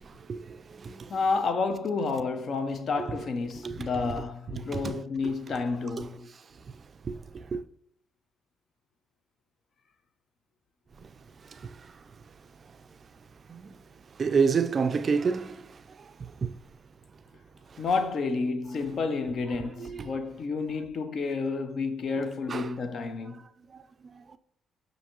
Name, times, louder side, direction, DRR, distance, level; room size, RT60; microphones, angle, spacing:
voice 1, 0.0-1.2 3.6-3.9 4.7-5.0 6.0-6.1 7.0-7.6 11.0-11.1 11.5-11.7 13.5-13.7 14.2-15.8 16.2-16.5 17.7-17.8 19.8-20.1 22.5-22.7 23.7-24.4, right 5 dB, 40° right, 0.3 m, -30 dB
voice 2, 1.1-6.3 17.8-23.4, left 4 dB, 55° left, 0.5 m, -30 dB
6.3 x 2.6 x 2.9 m
cardioid pair, 90°, 0 cm